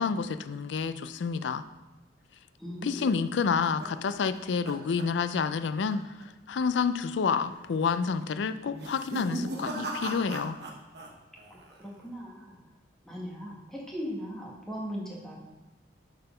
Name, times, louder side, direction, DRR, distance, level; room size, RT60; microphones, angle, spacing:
voice 1, 0.0-1.6 2.8-6.0 6.5-10.6, left 5 dB, 75° left, 11 dB, 0.4 m, -29 dB
voice 2, 2.6-3.2 11.5-12.6 13.0-15.4, equal, ahead, -3 dB, 1.3 m, -38 dB
sound 1, 3.1-5.6 5.9-6.2 6.6-6.7 7.4-7.8 8.7-11.1 11.4-12.0, right 1 dB, 60° right, 1.1 m, -38 dB
6.6 x 4.1 x 5.4 m, 1.2 s
head